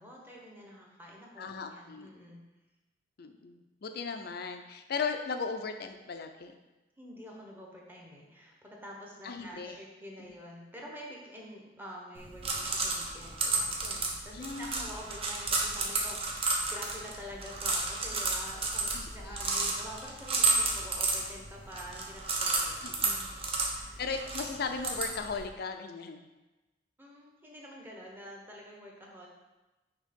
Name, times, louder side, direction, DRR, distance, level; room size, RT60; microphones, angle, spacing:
voice 1, 0.0-2.4 7.0-22.8 23.3-24.0 27.0-29.3, equal, 10° right, -2 dB, 1.0 m, -47 dB
voice 2, 1.4-2.1 3.2-6.5 9.2-9.8 10.2-10.3 14.3-14.9 18.9-19.7 22.8-23.4 24.0-26.2, left 5 dB, 55° left, 6 dB, 0.5 m, -37 dB
sound 1, 12.2-25.5, right 3 dB, 30° right, 0.8 m, -32 dB
6.3 x 2.9 x 5.2 m, 1.1 s
head